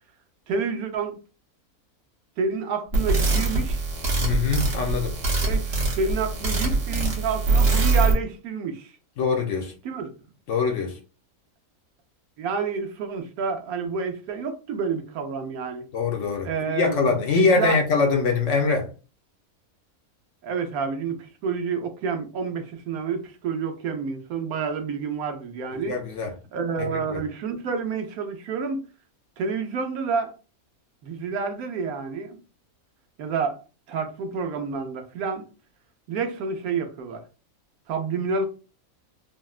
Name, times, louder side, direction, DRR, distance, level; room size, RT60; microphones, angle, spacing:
voice 1, 0.5-1.2 2.4-3.8 5.4-8.9 9.8-10.1 12.4-15.8 16.4-17.8 20.4-26.0 26.5-28.8 29.4-30.3 31.0-32.4 33.2-33.6 33.9-35.5 36.1-37.2 37.9-38.5, right 5 dB, 80° right, 1.1 m, -29 dB
sound 1, 2.9-8.1, right 3 dB, 50° right, 1.0 m, -23 dB
voice 2, 4.2-5.1 9.2-9.7 10.5-11.0 15.9-18.9 25.7-26.3 26.8-27.2, left 4 dB, 65° left, 0.9 m, -23 dB
3.5 x 2.1 x 2.3 m
omnidirectional pair, 1.5 m